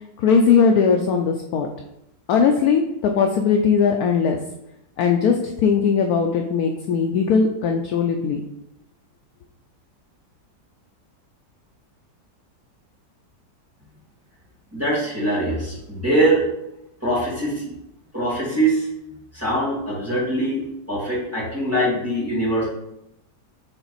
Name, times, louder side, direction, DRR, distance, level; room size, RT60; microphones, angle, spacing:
voice 1, 0.2-1.7 2.3-4.4 5.0-8.4, left 6 dB, 70° left, 3 dB, 0.9 m, -19 dB
voice 2, 14.7-16.5 17.0-17.7 18.1-18.9 19.3-20.6 20.9-22.7, right 1 dB, 10° right, -8 dB, 2.3 m, -22 dB
6.0 x 3.9 x 4.0 m, 0.84 s
omnidirectional pair, 1.9 m